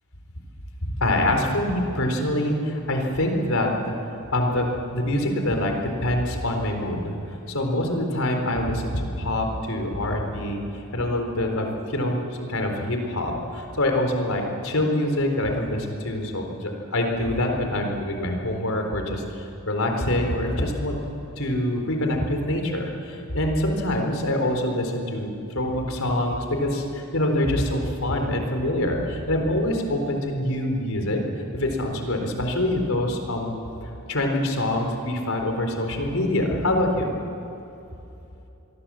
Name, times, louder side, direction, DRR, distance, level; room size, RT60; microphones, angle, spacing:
voice 1, 0.9-3.9 4.3-7.1 7.5-10.6 10.9-21.0 21.4-31.2 31.5-33.6 34.1-37.1, left 1 dB, 75° left, 3 dB, 4.1 m, -25 dB
27.0 x 22.0 x 7.7 m, 2.9 s
head